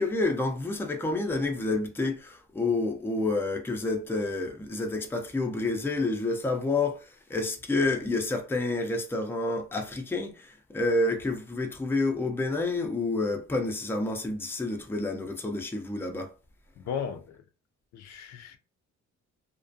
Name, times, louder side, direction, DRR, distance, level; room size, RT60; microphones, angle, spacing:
voice 1, 0.0-16.3, left 2 dB, 10° left, 0.4 m, -29 dB
voice 2, 16.8-17.4 17.9-18.6, left 7 dB, 65° left, 0.4 m, -36 dB
2.4 x 2.1 x 2.5 m
cardioid pair, 90°, 30 cm